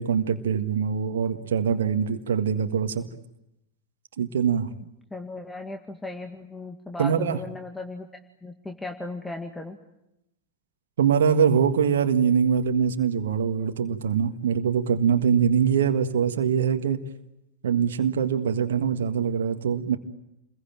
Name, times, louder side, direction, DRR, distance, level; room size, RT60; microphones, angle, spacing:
voice 1, 0.0-3.0 4.2-4.7 7.0-7.4 11.0-17.0 17.6-20.0, right 7 dB, 65° right, 6 dB, 1.7 m, -23 dB
voice 2, 5.1-8.1 8.4-9.8, left 2 dB, 5° left, 4 dB, 2.0 m, -36 dB
29.0 x 21.5 x 9.0 m, 0.87 s
figure-of-eight pair, 90°, 0 cm